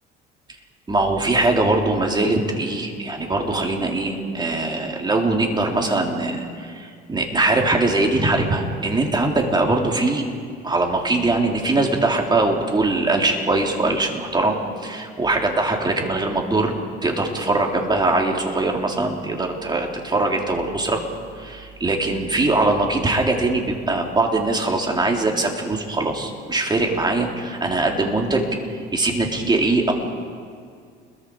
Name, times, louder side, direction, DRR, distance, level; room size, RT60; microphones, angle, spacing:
voice 1, 0.9-10.3 10.6-14.6 14.8-16.7 17.0-21.0 21.4-29.9, right 2 dB, 20° right, 1 dB, 3.8 m, -21 dB
30.0 x 22.0 x 5.0 m, 2.2 s
cardioid pair, 100°, 21 cm